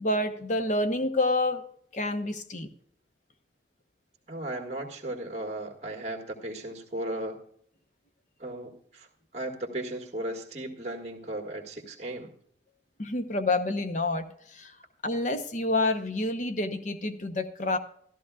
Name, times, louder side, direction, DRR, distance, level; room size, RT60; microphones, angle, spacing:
voice 1, 0.0-1.6 1.9-2.7 13.0-14.7 15.0-17.8, left 2 dB, 45° left, 8 dB, 0.9 m, -28 dB
voice 2, 4.3-7.4 8.4-9.1 9.3-12.3, right 1 dB, 35° right, 3 dB, 1.8 m, -36 dB
14.0 x 12.5 x 2.4 m, 0.65 s
head